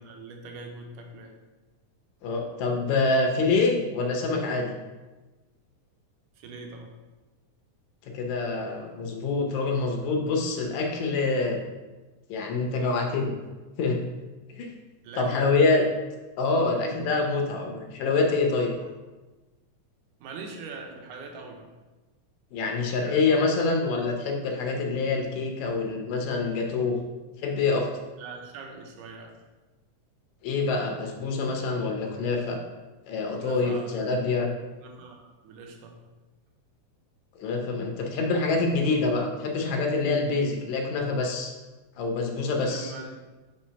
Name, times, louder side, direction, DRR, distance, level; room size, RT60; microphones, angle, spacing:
voice 1, 0.0-1.4 6.4-6.9 15.0-15.9 18.2-18.3 20.2-21.7 23.1-23.2 28.2-29.3 33.4-34.2 34.8-36.0 38.0-38.1 42.7-43.2, right 4 dB, 90° right, 2 dB, 2.4 m, -42 dB
voice 2, 2.2-4.7 8.1-11.6 12.3-13.4 13.8-14.0 14.5-14.7 15.2-15.8 16.4-18.7 22.5-27.0 27.4-27.9 30.4-32.6 33.1-34.5 37.4-41.5 42.0-42.9, left 3 dB, 75° left, 2 dB, 2.0 m, -26 dB
5.6 x 3.2 x 5.6 m, 1.2 s
omnidirectional pair, 3.5 m